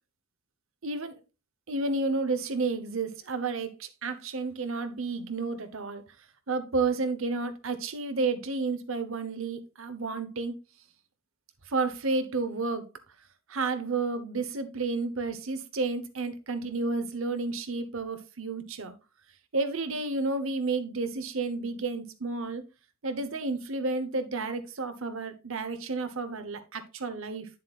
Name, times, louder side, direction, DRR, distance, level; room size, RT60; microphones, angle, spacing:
voice 1, 0.8-1.1 1.7-6.0 6.5-10.6 11.7-12.9 13.5-18.9 19.5-22.6 23.0-27.5, right 3 dB, 65° right, 10 dB, 1.0 m, -31 dB
9.1 x 7.3 x 2.4 m, 0.27 s
head